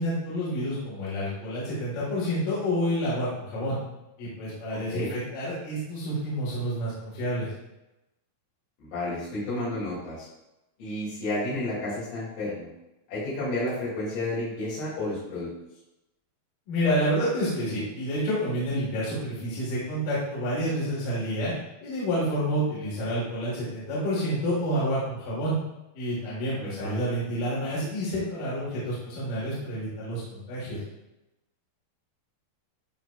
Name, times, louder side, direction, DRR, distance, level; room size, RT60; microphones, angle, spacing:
voice 1, 0.0-3.8 4.2-7.5 16.7-21.5 21.8-25.6 25.9-30.8, equal, 60° left, -7 dB, 2.9 m, -29 dB
voice 2, 8.8-10.3 10.8-12.7 13.1-15.5 26.6-26.9, left 1 dB, 85° left, -10 dB, 4.4 m, -31 dB
11.5 x 3.9 x 2.4 m, 0.95 s
omnidirectional pair, 4.5 m